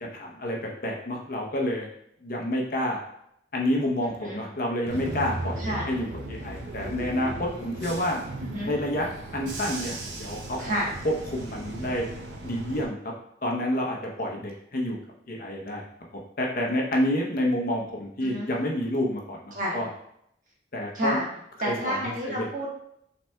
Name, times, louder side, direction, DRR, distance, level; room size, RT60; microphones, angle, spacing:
voice 1, 0.1-1.9 2.2-3.0 3.5-8.2 8.7-9.1 9.3-10.6 11.3-12.1 12.4-13.0 13.4-15.0 15.3-15.8 16.1-19.9 20.7-21.2 21.6-22.5, left 1 dB, 50° left, -1 dB, 0.8 m, -29 dB
Bus / Engine, 4.9-12.8, right 2 dB, 80° right, 0.7 m, -36 dB
voice 2, 5.6-5.9 8.4-8.7 10.6-10.9 18.2-18.5 19.5-19.8 20.9-21.3 21.6-22.7, equal, 45° right, -4 dB, 1.3 m, -30 dB
5.7 x 3.4 x 2.2 m, 0.74 s
head